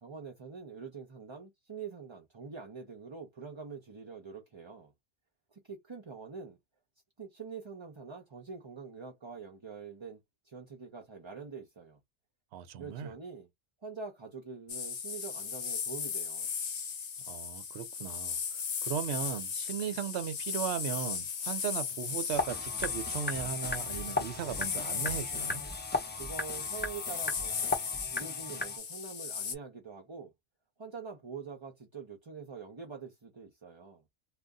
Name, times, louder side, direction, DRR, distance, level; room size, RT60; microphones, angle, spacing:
voice 1, 0.0-4.9 5.5-6.6 7.2-10.2 10.4-12.0 12.7-13.5 13.8-16.5 26.2-27.8 28.1-30.3 30.8-34.0, right 5 dB, 30° right, 0.7 m, -45 dB
voice 2, 12.5-13.1 17.3-18.4 18.8-25.6, right 8 dB, 70° right, 0.9 m, -37 dB
sound 1, 14.7-29.6, left 6 dB, 55° left, 0.9 m, -37 dB
sound 2, 22.3-28.8, left 2 dB, 10° left, 0.7 m, -37 dB
2.6 x 2.4 x 3.5 m
omnidirectional pair, 1.2 m